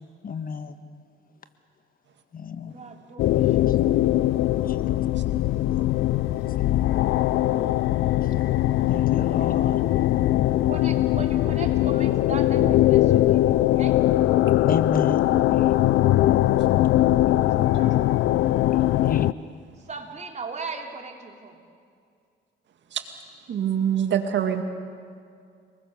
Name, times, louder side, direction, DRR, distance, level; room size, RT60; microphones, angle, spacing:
voice 1, 0.2-0.7 2.3-2.7 3.7-3.8 4.8-5.0 6.7-7.0 8.9-9.8 14.7-15.3 19.0-19.3, left 6 dB, 45° left, 10 dB, 1.4 m, -30 dB
voice 2, 2.7-3.7 4.7-5.8 6.8-7.2 10.7-14.0 17.5-18.0 19.9-21.6, right 4 dB, 35° right, 2 dB, 3.4 m, -39 dB
sound 1, 3.2-19.3, left 14 dB, 85° left, 0.5 m, -21 dB
voice 3, 23.5-24.6, right 9 dB, 65° right, 6 dB, 2.2 m, -24 dB
29.5 x 20.5 x 7.1 m, 2.3 s
cardioid pair, 90°, 20 cm